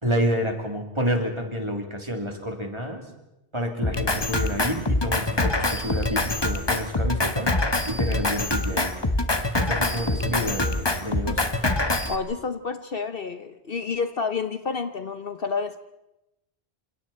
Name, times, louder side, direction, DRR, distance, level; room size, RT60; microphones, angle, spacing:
voice 1, 0.0-3.0 3.5-7.5 7.8-8.9 9.5-11.4, equal, 25° right, 2 dB, 3.3 m, -29 dB
Drum kit, 3.8-12.2, left 2 dB, 20° left, 1.2 m, -25 dB
voice 2, 12.1-15.8, left 5 dB, 55° left, 9 dB, 1.1 m, -29 dB
28.0 x 27.5 x 4.3 m, 0.90 s
omnidirectional pair, 1.2 m